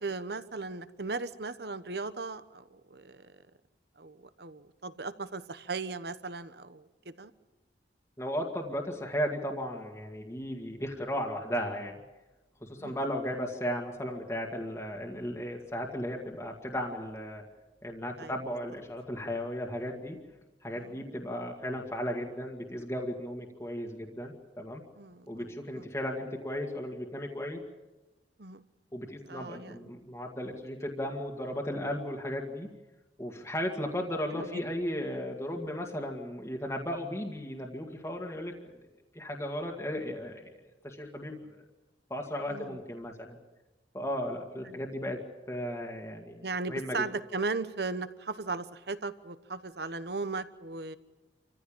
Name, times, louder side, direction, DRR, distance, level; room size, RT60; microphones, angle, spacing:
voice 1, 0.0-3.4 4.0-7.3 12.8-13.0 18.2-18.4 20.8-21.0 25.0-25.5 25.8-25.9 28.4-28.6 29.2-29.9 34.3-34.6 42.5-42.8 44.7-44.8 46.4-51.0, right 3 dB, 60° right, 13 dB, 1.1 m, -37 dB
voice 2, 8.2-12.0 12.6-17.4 17.8-20.2 20.6-24.8 25.3-27.6 28.9-32.7 33.2-38.5 39.2-40.5 40.8-41.6 42.1-43.4 43.9-45.2 45.5-47.0, equal, 15° left, 0 dB, 1.9 m, -35 dB
27.0 x 15.0 x 8.9 m, 1.1 s
head